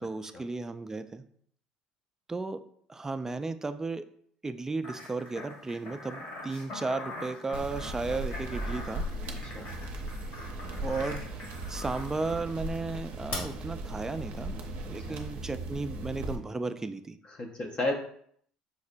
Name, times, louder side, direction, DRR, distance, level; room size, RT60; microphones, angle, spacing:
voice 1, 0.0-1.2 2.3-2.6 2.9-4.1 4.4-9.0 10.8-11.2 11.7-14.6 14.9-17.2, right 3 dB, 15° right, 10 dB, 0.3 m, -34 dB
sound 1, 4.8-12.5 13.3-13.4, left 2 dB, 60° left, 1.4 m, -43 dB
sound 2, 7.5-16.4, right 1 dB, 60° right, 0.6 m, -37 dB
voice 2, 9.4-9.8 15.1-15.2 17.2-18.0, left 2 dB, 35° left, 1 dB, 0.5 m, -33 dB
5.2 x 2.0 x 2.5 m, 0.64 s
hypercardioid pair, 70°, 3 cm